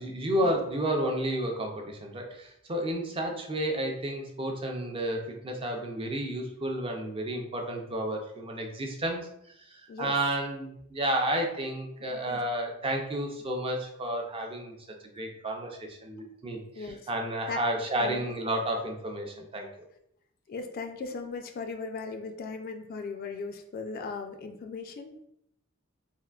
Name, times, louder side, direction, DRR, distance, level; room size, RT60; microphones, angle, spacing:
voice 1, 0.0-9.2 9.7-14.7 15.1-19.7, right 1 dB, 25° right, 2 dB, 0.4 m, -31 dB
voice 2, 12.0-12.4 16.7-17.1 17.5-17.6 18.0-18.3 20.5-25.3, left 4 dB, 45° left, 5 dB, 0.3 m, -38 dB
3.5 x 2.4 x 2.3 m, 0.75 s
head